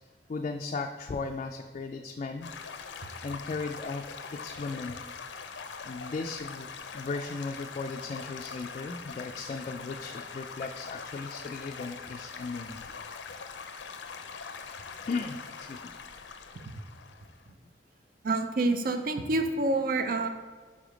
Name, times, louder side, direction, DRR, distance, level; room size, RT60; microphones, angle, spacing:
voice 1, 0.3-2.5 3.2-5.0 5.8-12.9 15.1-15.9, left 4 dB, 40° left, 3 dB, 0.3 m, -36 dB
Stream / Gurgling / Trickle dribble, 2.4-17.5, left 5 dB, 85° left, 0.6 m, -43 dB
voice 2, 18.2-20.3, right 2 dB, 55° right, 8 dB, 0.5 m, -27 dB
5.5 x 4.9 x 5.0 m, 1.5 s
head